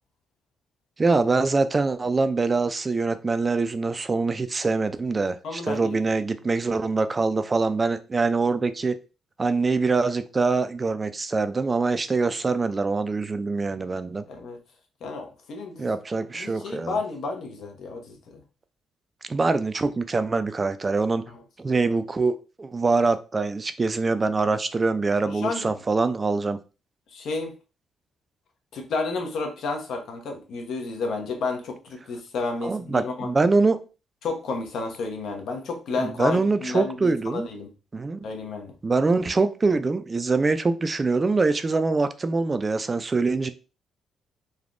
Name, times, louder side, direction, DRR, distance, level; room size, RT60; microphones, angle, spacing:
voice 1, 1.0-9.0 9.4-14.2 15.8-17.0 19.3-21.3 21.6-26.6 32.6-33.8 36.0-37.5 37.9-38.2 38.8-43.5, right 3 dB, 30° right, 0.3 m, -24 dB
voice 2, 5.4-6.0 14.3-14.6 15.0-15.9 16.3-18.4 21.3-21.4 25.3-25.7 27.1-27.5 28.7-33.3 34.2-37.7 38.2-38.7, left 3 dB, 70° left, 0.8 m, -31 dB
3.4 x 2.2 x 2.5 m
cardioid pair, 90°, 0 cm